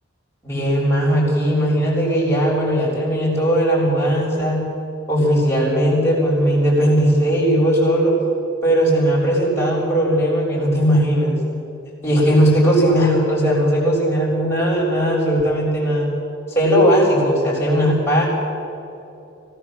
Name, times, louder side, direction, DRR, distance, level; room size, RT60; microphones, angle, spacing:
voice 1, 0.4-4.7 5.1-8.1 8.6-11.3 12.0-16.1 16.5-18.3, equal, 10° left, -5 dB, 7.0 m, -18 dB
25.0 x 17.5 x 7.5 m, 2.8 s
head